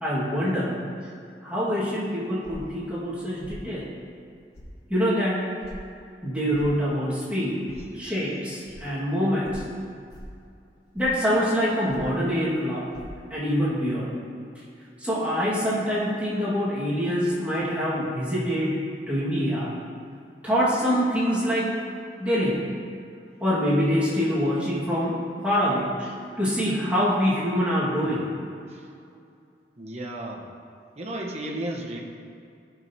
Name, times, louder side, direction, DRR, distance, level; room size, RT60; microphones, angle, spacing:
voice 1, 0.0-0.7 1.4-3.8 4.9-5.4 6.2-7.6 7.9-9.6 10.9-12.9 13.3-14.1 15.0-18.8 19.1-19.8 20.4-21.7 22.2-22.6 23.4-25.2 25.4-26.1 26.4-28.2, equal, 10° right, -10 dB, 1.7 m, -25 dB
sound 1, 2.4-2.8 3.4-3.6 4.5-4.7 5.6-5.8 6.5-6.7 7.7-7.8 8.6-8.8 9.4-9.7 10.1-10.4 10.9-11.2 11.9-12.2 12.9-13.0, equal, 60° left, 1.4 m, -43 dB
voice 2, 29.8-30.4 31.0-32.0, right 1 dB, 40° right, -1 dB, 1.0 m, -33 dB
14.0 x 6.0 x 2.8 m, 2.4 s
head